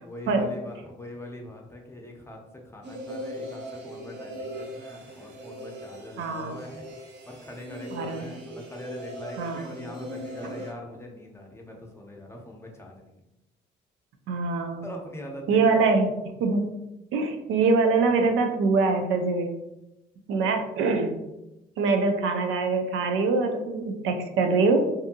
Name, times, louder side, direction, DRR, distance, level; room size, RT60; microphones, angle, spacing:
voice 1, 0.0-6.9 7.3-13.2 14.8-15.8, left 1 dB, 15° left, 1 dB, 0.6 m, -42 dB
sound 1, 2.8-10.7, equal, 60° right, 0.7 m, -40 dB
voice 2, 6.2-6.5 7.9-8.3 9.4-9.6 14.3-14.9 15.5-16.1 16.4-16.7 17.1-19.6 20.3-21.2 21.8-24.8, right 4 dB, 85° right, 4 dB, 0.5 m, -23 dB
2.6 x 2.6 x 2.5 m, 0.93 s
cardioid pair, 90°, 20 cm